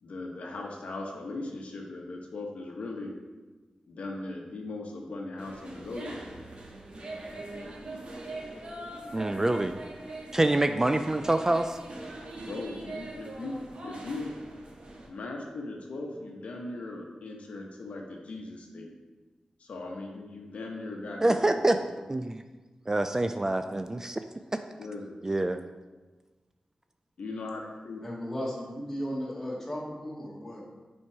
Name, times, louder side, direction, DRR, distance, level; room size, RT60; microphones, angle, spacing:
voice 1, 0.0-3.1 3.9-6.2 12.4-14.3 15.1-18.9 19.6-21.8 24.8-25.1 27.2-28.0, left 2 dB, 80° left, 1 dB, 1.0 m, -39 dB
sound 1, 5.4-15.1, right 2 dB, 60° right, 1.3 m, -42 dB
voice 2, 9.1-9.8 10.3-11.8 21.2-21.8 22.1-22.4 22.9-24.2 25.2-25.6, right 2 dB, 25° right, 8 dB, 0.3 m, -26 dB
voice 3, 28.0-30.6, equal, 15° left, -5 dB, 2.1 m, -35 dB
5.8 x 4.5 x 4.7 m, 1.3 s
cardioid pair, 70°, 2 cm